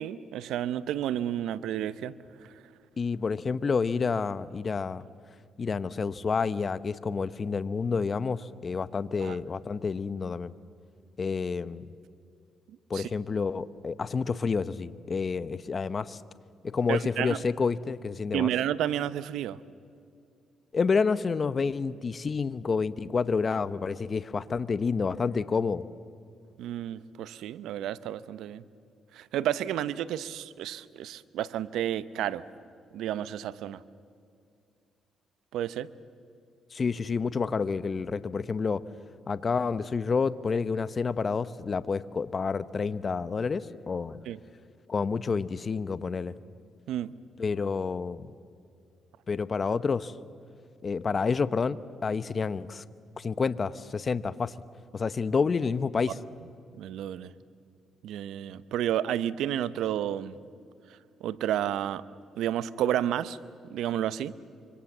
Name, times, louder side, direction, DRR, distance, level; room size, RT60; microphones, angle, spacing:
voice 1, 0.0-2.1 9.2-9.4 12.9-13.1 16.9-17.4 18.3-19.6 26.6-28.6 29.1-32.4 32.9-33.8 35.5-35.9 44.3-44.4 46.9-47.1 56.7-57.3 58.0-60.4 61.2-62.0 62.4-63.4 63.7-64.3, right 11 dB, 85° right, 16 dB, 0.8 m, -31 dB
voice 2, 3.0-5.1 5.6-10.5 11.2-11.9 12.9-16.2 16.6-18.5 20.7-25.8 36.7-38.8 39.3-44.2 44.9-46.3 47.4-48.3 49.3-50.1 50.8-52.8 53.2-54.5 54.9-56.2, left 5 dB, 40° left, 15 dB, 0.8 m, -29 dB
25.5 x 25.5 x 7.3 m, 2.4 s
cardioid pair, 90°, 0 cm